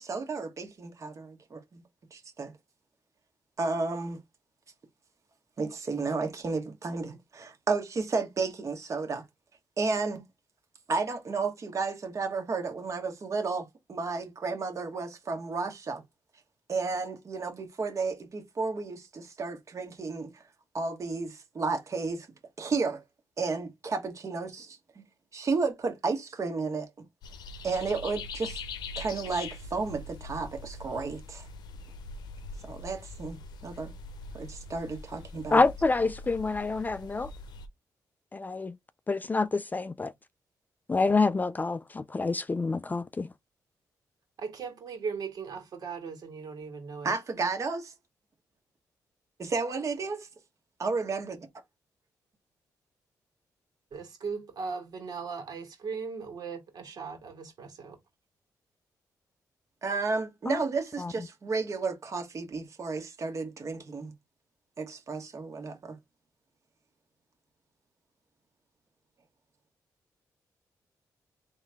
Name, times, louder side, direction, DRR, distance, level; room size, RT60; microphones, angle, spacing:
voice 1, 0.0-1.8 2.1-2.5 3.6-4.2 5.6-9.2 9.8-10.2 10.9-16.0 16.7-20.4 20.7-22.3 22.6-23.0 23.4-25.0 25.3-26.9 27.6-28.6 29.0-31.4 32.7-33.4 33.6-33.9 34.3-35.6 47.0-47.9 49.4-50.3 50.8-51.5 59.8-64.1 64.8-66.0, right 4 dB, 45° right, 1.4 m, -32 dB
sound 1, 27.2-37.7, left 3 dB, 90° left, 0.7 m, -43 dB
voice 2, 35.5-37.3 38.3-38.8 39.1-40.1 40.9-43.3 60.5-60.6 61.0-61.1, left 3 dB, 25° left, 0.4 m, -27 dB
voice 3, 44.4-47.1 53.9-58.0, right 5 dB, 70° right, 2.1 m, -38 dB
3.7 x 3.2 x 3.5 m
cardioid pair, 85°, 7 cm